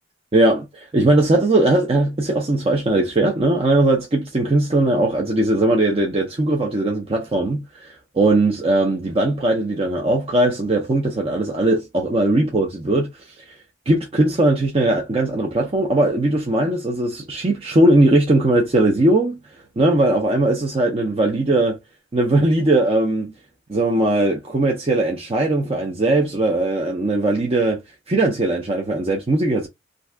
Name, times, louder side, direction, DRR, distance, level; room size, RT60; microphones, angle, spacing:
voice 1, 0.3-13.1 13.9-19.4 19.8-21.8 22.1-23.3 23.7-27.8 28.1-29.7, right 2 dB, 30° right, 0.5 m, -19 dB
2.6 x 2.3 x 3.3 m
head